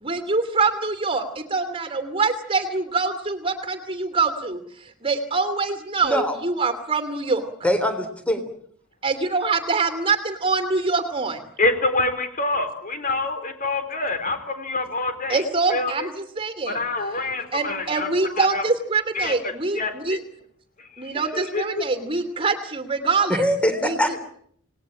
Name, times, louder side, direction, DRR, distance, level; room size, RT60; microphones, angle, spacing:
voice 1, 0.0-4.6 5.0-7.5 9.0-11.4 15.3-16.8 17.5-20.2 21.0-24.0, right 4 dB, 25° right, 10 dB, 2.8 m, -24 dB
voice 2, 6.0-6.4 7.6-8.4 23.3-24.2, equal, 5° left, 8 dB, 3.6 m, -22 dB
voice 3, 11.6-15.4 15.7-15.9 16.7-18.6 19.1-20.2 20.8-21.8, left 2 dB, 40° left, 8 dB, 4.4 m, -26 dB
28.0 x 20.0 x 8.9 m, 0.64 s
head